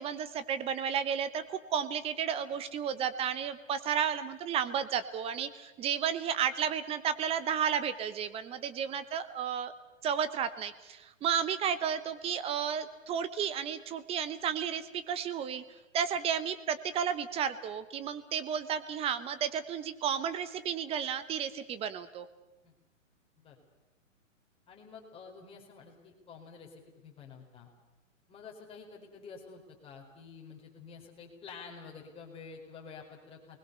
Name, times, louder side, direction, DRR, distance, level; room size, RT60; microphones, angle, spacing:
voice 1, 0.0-9.7 10.0-15.6 15.9-22.3, right 8 dB, 15° right, 13 dB, 1.0 m, -32 dB
voice 2, 24.7-27.7 28.3-33.6, left 5 dB, 15° left, -1 dB, 4.5 m, -49 dB
28.5 x 21.0 x 6.9 m, 1.0 s
hypercardioid pair, 140°, 39 cm